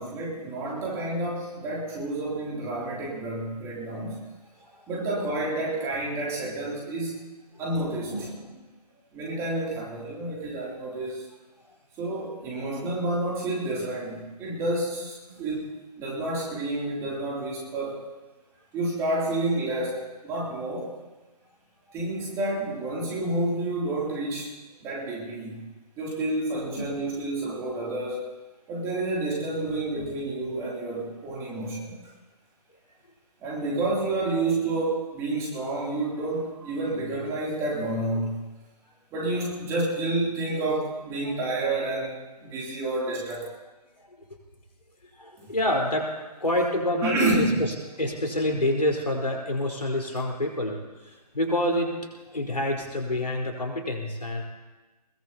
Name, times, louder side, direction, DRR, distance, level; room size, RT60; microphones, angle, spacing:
voice 1, 0.0-4.2 4.9-7.2 7.6-8.3 9.1-11.3 12.0-15.7 16.0-18.1 18.7-20.9 21.9-24.5 24.8-25.6 26.0-28.3 28.7-31.9 33.4-38.4 39.1-43.4 45.4-45.5 47.0-47.6, right 2 dB, 15° right, -4 dB, 3.1 m, -29 dB
voice 2, 8.1-8.6 15.3-15.4 26.8-26.9 41.2-41.4 44.0-44.2 45.2-51.9 52.3-54.4, left 1 dB, 75° left, 0 dB, 4.4 m, -28 dB
21.0 x 20.5 x 2.9 m, 1.2 s
figure-of-eight pair, 145°, 21 cm